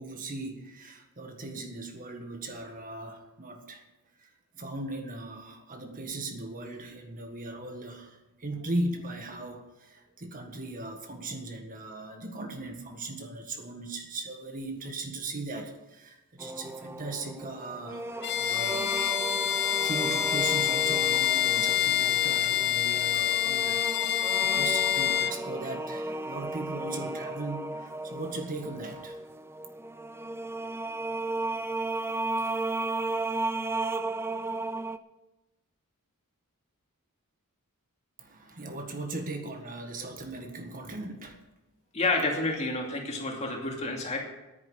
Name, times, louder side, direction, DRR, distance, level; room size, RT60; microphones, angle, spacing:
voice 1, 0.0-3.8 4.2-19.0 19.4-23.8 24.1-29.2 38.2-41.4, right 2 dB, 40° right, 4 dB, 1.6 m, -38 dB
sound 1, 16.4-35.0, right 2 dB, 10° right, 0.4 m, -34 dB
Bowed string instrument, 18.2-25.4, left 11 dB, 50° left, 0.7 m, -26 dB
voice 2, 41.9-44.2, left 2 dB, 30° left, 0 dB, 2.5 m, -29 dB
10.0 x 9.7 x 8.0 m, 1.0 s
head